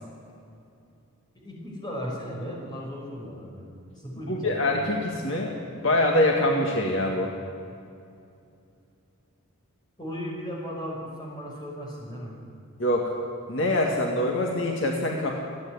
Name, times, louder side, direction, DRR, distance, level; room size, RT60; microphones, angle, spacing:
voice 1, 1.4-3.7 4.0-4.7 10.0-12.3, equal, 20° left, -3 dB, 5.5 m, -36 dB
voice 2, 4.3-7.3 12.8-13.1 13.5-15.3, left 1 dB, 60° left, 0 dB, 2.0 m, -24 dB
28.0 x 9.8 x 9.6 m, 2.6 s
head